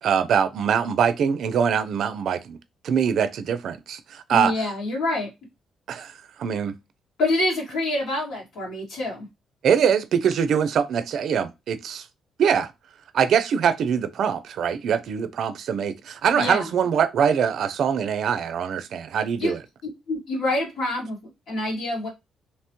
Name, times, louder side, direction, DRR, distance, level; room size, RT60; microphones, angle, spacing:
voice 1, 0.0-2.6 2.8-4.5 5.9-6.8 9.6-12.1 12.4-12.7 13.1-19.6, right 7 dB, 65° right, 0.4 m, -23 dB
voice 2, 4.3-5.3 7.2-9.3 16.3-16.7 19.4-19.5 20.1-21.2 21.5-22.1, left 1 dB, 80° left, 1.6 m, -26 dB
3.0 x 2.1 x 2.9 m
cardioid pair, 90°, 0 cm